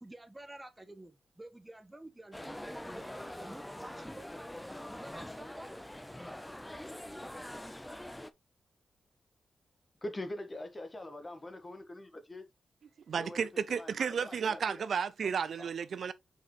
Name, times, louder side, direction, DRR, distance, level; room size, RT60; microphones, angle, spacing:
voice 1, 0.0-4.3 4.9-5.7, right 1 dB, 15° right, 1.4 m, -50 dB
sound 1, 2.3-8.3, left 1 dB, 10° left, 0.7 m, -44 dB
voice 2, 10.0-12.4 13.2-14.8 15.6-15.7, left 1 dB, 25° left, 1.4 m, -43 dB
voice 3, 13.1-16.1, right 6 dB, 65° right, 0.5 m, -33 dB
6.4 x 4.8 x 3.1 m
cardioid pair, 100°, 0 cm